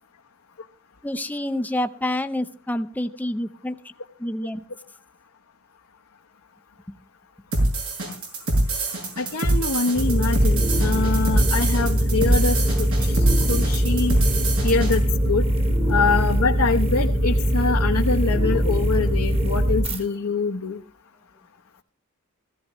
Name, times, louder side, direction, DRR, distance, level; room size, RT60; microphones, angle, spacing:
voice 1, 1.0-3.8 4.2-4.6, left 1 dB, 10° left, 8 dB, 0.7 m, -27 dB
sound 1, 7.5-15.0, right 1 dB, 80° right, 6.2 m, -24 dB
voice 2, 9.2-14.2 14.6-15.4 15.9-20.8, left 4 dB, 80° left, 1 dB, 1.0 m, -25 dB
sound 2, 9.9-20.0, equal, 30° right, 1.8 m, -22 dB
16.5 x 15.5 x 3.1 m, 0.40 s
head